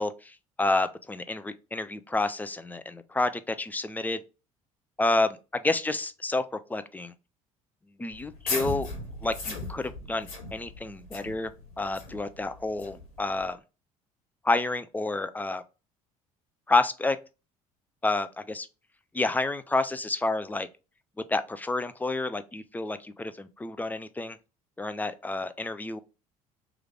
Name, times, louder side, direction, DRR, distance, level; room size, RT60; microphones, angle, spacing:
voice 1, 0.0-4.2 5.0-5.4 5.6-7.1 8.0-8.9 9.2-11.5 11.8-13.6 14.4-15.6 16.7-17.2 18.0-18.7 19.1-20.7 21.3-24.4 24.8-26.0, left 2 dB, 10° left, 0.3 m, -29 dB
sound 1, 8.1-13.5, left 3 dB, 70° left, 1.2 m, -37 dB
3.1 x 2.4 x 3.3 m
figure-of-eight pair, 55°, 18 cm